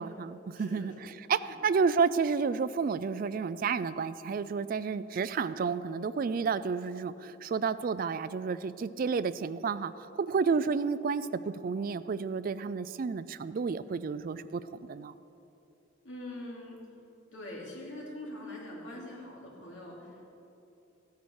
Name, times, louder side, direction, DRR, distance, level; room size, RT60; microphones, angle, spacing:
voice 1, 0.0-15.1, right 5 dB, 50° right, 15 dB, 0.3 m, -31 dB
voice 2, 0.6-0.9 1.4-1.6 16.0-16.8 17.3-20.3, left 1 dB, 75° left, -3 dB, 3.0 m, -43 dB
15.0 x 9.4 x 4.7 m, 2.8 s
head